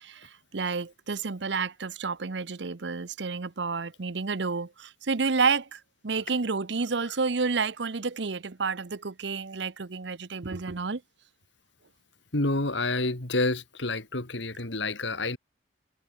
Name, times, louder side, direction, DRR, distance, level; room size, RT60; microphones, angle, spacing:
voice 1, 0.0-11.0, right 4 dB, 70° right, 0.8 m, -30 dB
voice 2, 12.3-15.4, left 2 dB, 80° left, 2.6 m, -28 dB
head